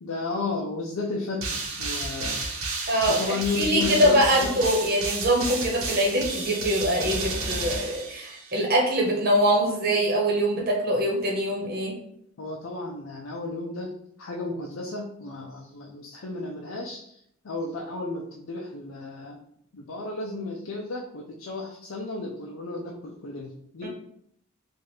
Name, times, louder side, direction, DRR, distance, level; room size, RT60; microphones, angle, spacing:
voice 1, 0.0-2.4 3.1-4.6 12.4-17.2 17.4-19.4 19.7-23.9, left 3 dB, 70° left, -1 dB, 0.5 m, -33 dB
sound 1, 1.4-8.7, right 3 dB, 85° right, 0.9 m, -32 dB
voice 2, 2.9-3.2 3.6-11.9 23.8-23.9, equal, 45° right, -1 dB, 1.1 m, -23 dB
4.4 x 2.4 x 3.2 m, 0.69 s
head